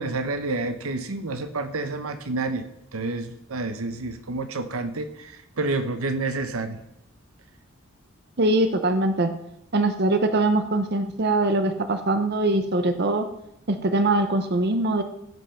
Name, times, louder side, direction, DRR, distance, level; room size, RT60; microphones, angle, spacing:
voice 1, 0.0-2.7 2.9-6.8, right 3 dB, 80° right, 10 dB, 0.9 m, -29 dB
voice 2, 8.4-9.3 9.7-13.3 13.7-15.0, right 2 dB, 50° right, 8 dB, 0.8 m, -22 dB
15.0 x 5.4 x 5.7 m, 0.82 s
head